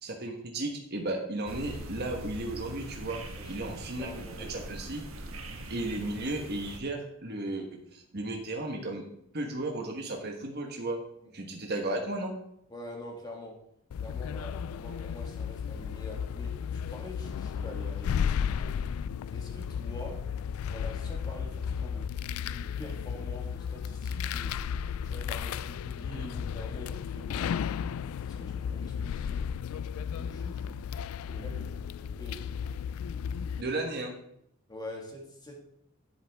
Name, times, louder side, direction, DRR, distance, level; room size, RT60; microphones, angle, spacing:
voice 1, 0.0-3.2 3.5-5.1 5.7-9.1 9.3-11.0 11.3-12.3 33.6-34.2, right 2 dB, 50° right, 2 dB, 1.4 m, -34 dB
sound 1, 1.5-6.8, right 1 dB, 80° right, 1.3 m, -42 dB
voice 2, 3.3-4.7 11.2-11.3 12.7-13.6 14.0-18.8 19.3-20.3 20.7-22.1 22.4-24.6 25.0-27.9 28.2-29.5 30.1-30.8 31.2-31.7 32.0-32.6 34.7-35.6, left 1 dB, 20° left, -1 dB, 1.9 m, -45 dB
sound 2, 13.9-33.6, left 7 dB, 85° left, 0.3 m, -34 dB
11.0 x 7.5 x 3.5 m, 0.74 s
head